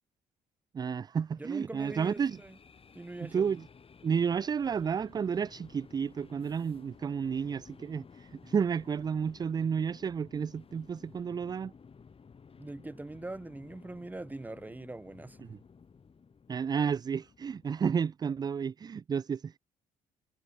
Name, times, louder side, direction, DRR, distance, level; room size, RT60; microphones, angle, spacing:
voice 1, 0.7-2.4 3.2-3.7 4.0-11.7 15.4-15.6 16.5-19.5, right 6 dB, 30° right, 0.3 m, -31 dB
voice 2, 1.4-2.6 2.9-3.6 12.6-15.5, right 2 dB, 10° right, 0.9 m, -42 dB
sound 1, 1.8-18.0, left 5 dB, 40° left, 5.6 m, -56 dB
supercardioid pair, 70°, 15 cm